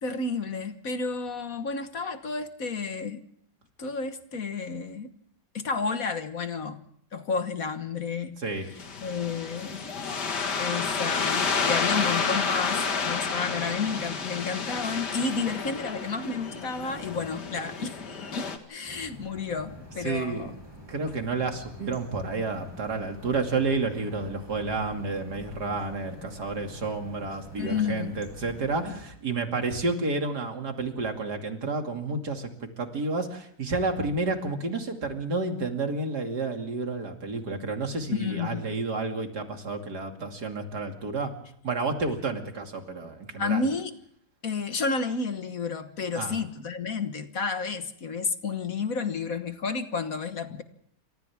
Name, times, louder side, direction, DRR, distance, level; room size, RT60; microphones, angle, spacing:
voice 1, 0.0-3.2 3.8-5.1 5.5-6.8 7.1-8.8 9.0-9.9 10.6-18.0 18.3-20.6 27.6-28.2 38.1-38.7 43.4-43.9 44.4-50.6, left 4 dB, 55° left, 9 dB, 1.8 m, -31 dB
voice 2, 8.4-8.7 20.0-20.5 20.9-41.3 41.6-43.6 46.2-46.4, right 3 dB, 70° right, 4 dB, 3.1 m, -30 dB
sound 1, 8.8-18.6, left 5 dB, 75° left, 2.4 m, -30 dB
sound 2, 18.8-29.1, equal, 15° right, 7.7 m, -46 dB
29.0 x 25.0 x 3.6 m, 0.65 s
omnidirectional pair, 1.8 m